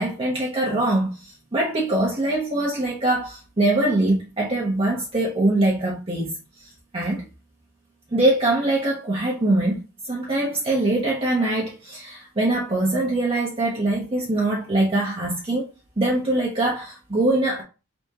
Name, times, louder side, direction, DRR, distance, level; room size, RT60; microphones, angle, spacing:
voice 1, 0.0-6.4 6.9-7.2 8.1-9.8 10.1-15.6 16.0-17.6, right 2 dB, 25° right, 0.8 m, -23 dB
4.2 x 3.5 x 2.8 m
head